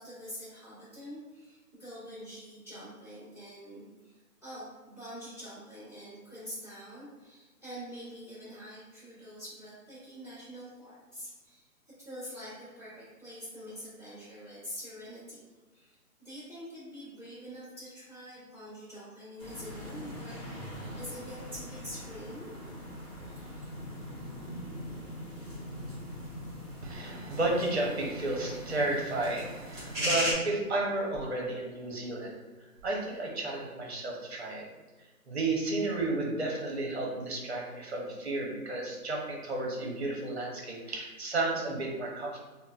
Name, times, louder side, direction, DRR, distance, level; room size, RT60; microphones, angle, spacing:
voice 1, 0.0-4.1 4.4-11.6 12.0-15.4 15.7-22.5 23.3-23.7, equal, 15° left, -17 dB, 1.3 m, -45 dB
sound 1, 19.4-30.3, equal, 10° right, 0.9 m, -39 dB
voice 2, 26.8-32.4 32.8-34.7 35.3-42.4, right 2 dB, 45° right, -1 dB, 0.7 m, -32 dB
3.7 x 2.0 x 2.3 m, 1.2 s
hypercardioid pair, 175°, 46 cm